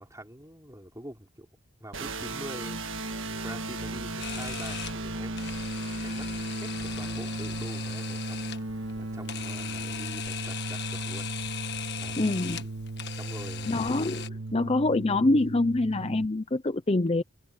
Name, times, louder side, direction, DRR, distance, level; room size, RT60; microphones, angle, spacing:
voice 1, 0.0-1.5 1.8-5.5 6.0-11.3 12.0-12.3 13.2-13.9, right 1 dB, 15° right, 3.9 m, -45 dB
sound 1, 1.9-16.3, right 2 dB, 60° right, 1.7 m, -36 dB
Camera, 4.2-14.3, left 9 dB, 50° left, 1.5 m, -39 dB
voice 2, 12.2-12.6 13.7-17.2, left 2 dB, 25° left, 0.6 m, -25 dB
head